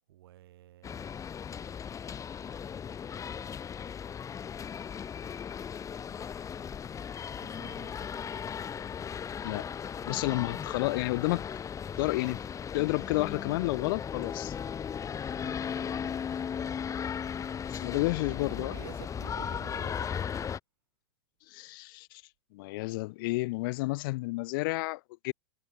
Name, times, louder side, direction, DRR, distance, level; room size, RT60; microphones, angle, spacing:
voice 1, 0.1-1.2 7.3-8.4 15.4-16.7 17.9-20.3, right 14 dB, 70° right, 7.8 m, -51 dB
sound 1, 0.8-20.6, left 7 dB, 25° left, 3.2 m, -37 dB
voice 2, 10.0-11.4 12.0-12.4 12.7-14.5 17.7-18.7 21.5-22.2 22.5-25.3, left 23 dB, 60° left, 2.6 m, -31 dB
hypercardioid pair, 95°, 13 cm